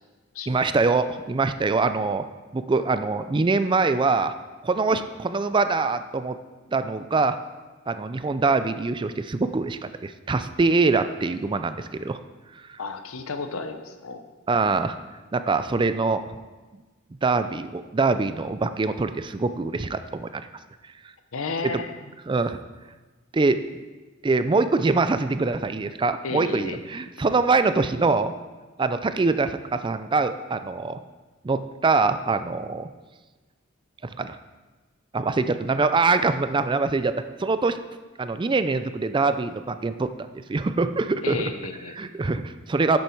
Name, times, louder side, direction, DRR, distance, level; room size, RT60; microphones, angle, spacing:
voice 1, 0.5-2.3 2.5-4.3 4.6-6.4 6.7-7.4 7.9-12.2 12.7-12.8 14.5-15.0 15.3-16.2 17.2-20.4 21.6-21.8 22.3-22.6 23.3-23.6 24.2-28.3 28.8-31.0 31.4-32.9 34.2-34.4 35.1-37.8 38.2-40.1 40.5-41.5 41.9-43.0, right 3 dB, 25° right, 10 dB, 0.4 m, -24 dB
voice 2, 12.8-14.2 21.3-22.0 26.2-26.8 41.2-42.0, left 4 dB, 80° left, 8 dB, 0.9 m, -32 dB
11.0 x 7.9 x 4.5 m, 1.2 s
head